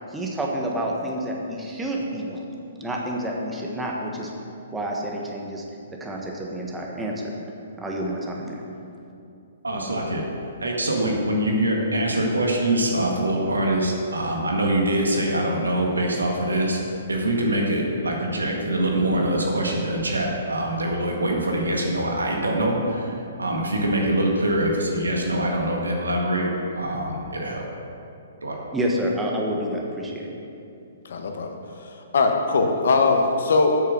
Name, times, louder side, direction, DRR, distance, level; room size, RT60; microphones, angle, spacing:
voice 1, 0.1-2.5 2.8-4.3 4.7-5.6 6.0-7.3 7.8-8.6 28.7-30.3, right 1 dB, 10° right, -1 dB, 1.3 m, -28 dB
voice 2, 9.6-10.2 10.6-16.8 17.1-26.5 26.7-27.7 28.4-28.6, right 1 dB, 85° right, 0 dB, 1.7 m, -24 dB
voice 3, 31.0-31.5 32.1-33.8, left 3 dB, 65° left, 4 dB, 1.1 m, -20 dB
8.2 x 6.6 x 6.0 m, 2.7 s
hypercardioid pair, 130°, 0 cm